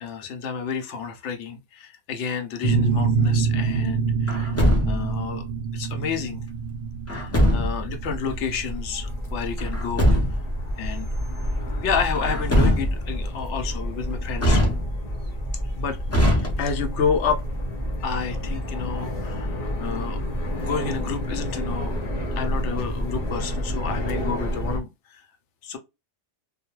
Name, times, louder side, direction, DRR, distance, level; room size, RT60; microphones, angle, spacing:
voice 1, 0.0-4.6 4.9-5.5 5.7-6.4 7.1-10.2 10.8-11.1 11.8-14.6 15.7-17.4 18.0-20.2 20.6-22.0 22.3-25.3 25.6-25.8, left 6 dB, 75° left, 0.9 m, -30 dB
sound 1, 2.6-12.0, right 5 dB, 65° right, 0.7 m, -26 dB
Truck, 4.3-5.2 7.1-7.9 9.6-10.6 12.2-13.2 14.4-15.2 16.1-17.0, equal, 20° left, 0.4 m, -22 dB
sound 2, 7.5-24.8, equal, 40° left, 0.7 m, -29 dB
2.4 x 2.2 x 2.9 m
omnidirectional pair, 1.2 m